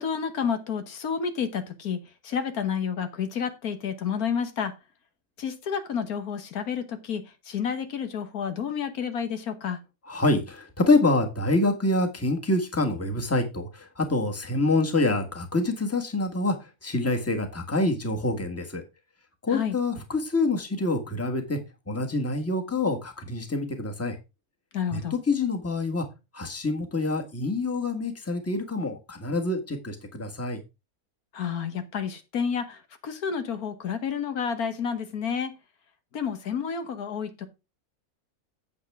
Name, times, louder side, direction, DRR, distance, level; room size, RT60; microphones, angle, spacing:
voice 1, 0.0-2.0 2.2-4.7 5.4-9.8 19.5-19.7 24.7-25.1 31.3-35.5 36.1-37.5, left 7 dB, 80° left, 1.6 m, -30 dB
voice 2, 10.1-16.5 16.8-18.8 19.4-21.6 21.9-24.2 24.9-26.0 26.3-30.6, left 2 dB, 10° left, 1.4 m, -26 dB
8.5 x 7.9 x 3.6 m
omnidirectional pair, 1.6 m